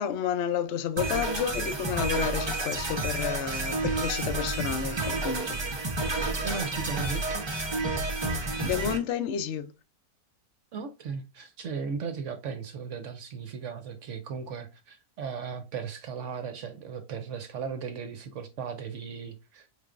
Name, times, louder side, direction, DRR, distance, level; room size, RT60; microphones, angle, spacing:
voice 1, 0.0-5.6 8.3-9.7, left 9 dB, 65° left, 0.7 m, -31 dB
sound 1, 1.0-9.0, right 2 dB, 35° right, 0.4 m, -30 dB
voice 2, 6.4-7.5 10.7-19.7, right 6 dB, 65° right, 0.8 m, -36 dB
4.9 x 3.3 x 2.4 m
omnidirectional pair, 1.7 m